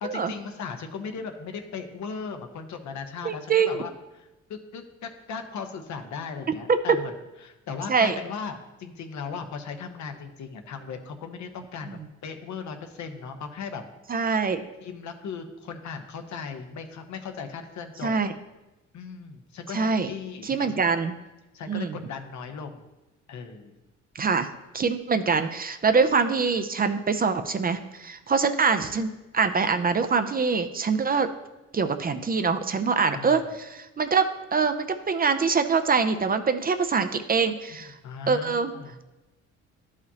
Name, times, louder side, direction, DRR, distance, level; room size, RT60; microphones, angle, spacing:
voice 1, 0.0-7.1 7.4-13.8 14.8-18.1 18.9-20.8 21.5-22.8 23.3-23.7 33.1-33.4 38.0-38.9, left 5 dB, 70° left, 6 dB, 0.9 m, -37 dB
voice 2, 3.2-3.8 6.7-6.8 7.9-8.1 11.9-12.1 14.1-14.6 18.0-18.3 19.7-20.1 20.4-21.1 21.7-22.0 24.2-24.5 24.7-31.3 31.7-37.9 38.3-38.7, right 5 dB, 30° right, 9 dB, 0.5 m, -24 dB
12.0 x 4.9 x 2.8 m, 1.0 s
cardioid pair, 90°, 30 cm